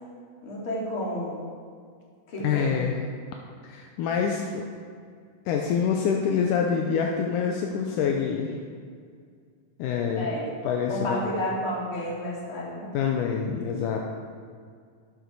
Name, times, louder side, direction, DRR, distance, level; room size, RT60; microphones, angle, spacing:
voice 1, 0.4-1.4 2.3-2.8 10.2-10.5 10.9-12.9, equal, 40° left, -5 dB, 2.7 m, -31 dB
voice 2, 2.4-2.9 3.6-4.7 5.5-8.6 9.8-10.3 10.6-11.2 12.9-14.0, left 7 dB, 80° left, 2 dB, 2.0 m, -26 dB
11.5 x 6.6 x 4.6 m, 2.1 s
omnidirectional pair, 4.0 m